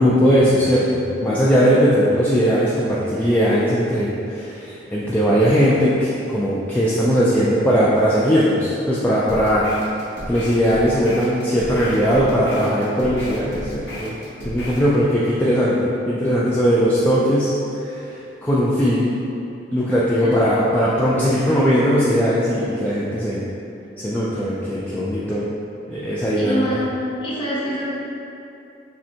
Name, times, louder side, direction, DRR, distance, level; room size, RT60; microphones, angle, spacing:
voice 1, 0.0-9.6 10.3-14.1 14.4-17.5 17.8-19.1 19.7-23.4 24.0-25.4 25.9-26.7, equal, 10° left, -8 dB, 0.3 m, -19 dB
sound 1, 9.3-14.9, left 1 dB, 75° left, 0.9 m, -34 dB
voice 2, 26.3-26.8 27.2-27.8, equal, 25° left, -8 dB, 0.9 m, -25 dB
6.0 x 2.2 x 2.8 m, 2.8 s
head